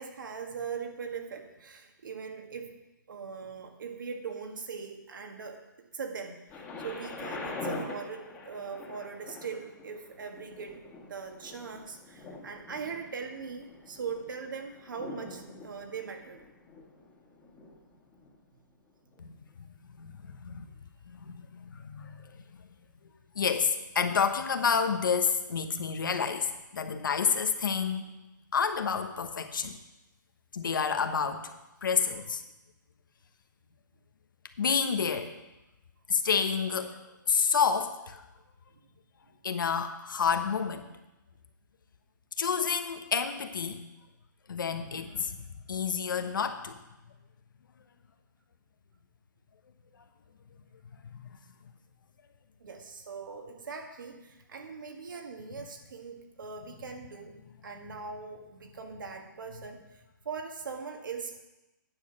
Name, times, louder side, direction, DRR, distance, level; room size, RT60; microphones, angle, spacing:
voice 1, 0.0-2.7 3.1-5.6 5.9-16.4 38.7-38.8 52.6-57.3 57.6-61.4, right 5 dB, 75° right, 4 dB, 1.7 m, -40 dB
Thunder, 6.5-18.3 19.1-19.2, left 3 dB, 15° left, 1.6 m, -44 dB
voice 2, 19.2-19.7 20.0-20.7 21.1-22.4 23.3-28.1 28.5-29.8 30.5-31.5 31.8-32.4 34.6-35.3 36.1-37.0 37.3-38.2 39.4-40.8 42.4-43.8 44.5-45.4 45.7-46.8 51.2-51.3, left 6 dB, 80° left, 7 dB, 1.1 m, -29 dB
9.7 x 6.5 x 6.0 m, 1.0 s
hypercardioid pair, 150°, 11 cm